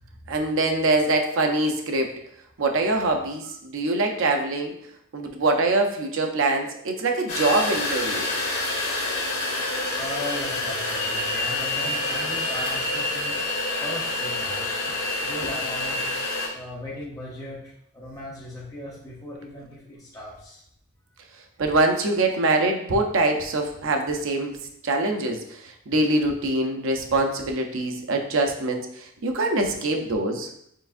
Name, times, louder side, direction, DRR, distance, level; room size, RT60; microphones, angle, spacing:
voice 1, 0.3-2.2 2.6-4.7 5.1-8.3 21.6-24.6 24.8-30.5, right 2 dB, 60° right, 4 dB, 0.5 m, -24 dB
sound 1, 7.3-16.5, left 2 dB, 75° left, 1.6 m, -27 dB
voice 2, 9.9-13.4 13.8-14.8 15.2-16.0 16.5-20.6, left 1 dB, 15° left, -6 dB, 0.8 m, -37 dB
4.6 x 3.3 x 2.5 m, 0.71 s
head